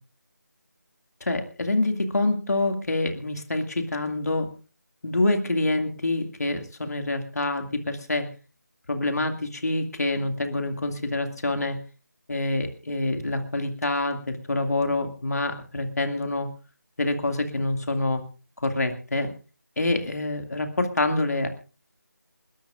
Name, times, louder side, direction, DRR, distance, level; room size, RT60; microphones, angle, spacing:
voice 1, 1.2-4.5 5.0-8.3 8.9-11.8 12.3-16.5 17.0-18.2 18.6-19.3 19.8-21.5, left 2 dB, 60° left, 5 dB, 2.3 m, -26 dB
29.0 x 12.5 x 2.5 m, 0.35 s
figure-of-eight pair, 175°, 10 cm